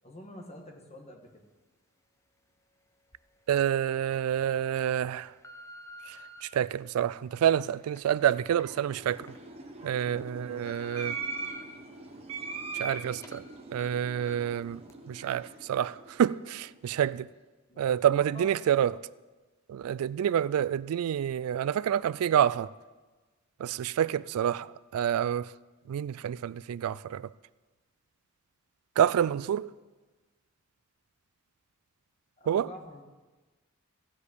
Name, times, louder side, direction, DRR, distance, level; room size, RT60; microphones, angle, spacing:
voice 1, 0.0-1.4 10.1-10.8 17.7-18.5 32.4-33.0, left 1 dB, 30° left, 1.5 m, -48 dB
sound 1, 3.1-3.2 3.9-4.2 4.8-6.4 7.1-9.4 9.8-9.9 10.3-11.6 12.1-13.0 13.2-13.4 13.8-13.9 14.3-14.5 14.9-15.0, equal, 15° left, 0.6 m, -50 dB
voice 2, 3.5-5.3 6.1-9.3 9.8-11.2 12.7-13.4 13.7-14.8 15.1-17.3 17.8-19.0 19.7-22.7 23.6-25.5 25.9-27.3 29.0-29.7 32.5-32.7, right 9 dB, 90° right, 0.3 m, -28 dB
sound 2, 8.4-16.8, right 4 dB, 30° right, 1.1 m, -42 dB
15.0 x 5.2 x 8.2 m
head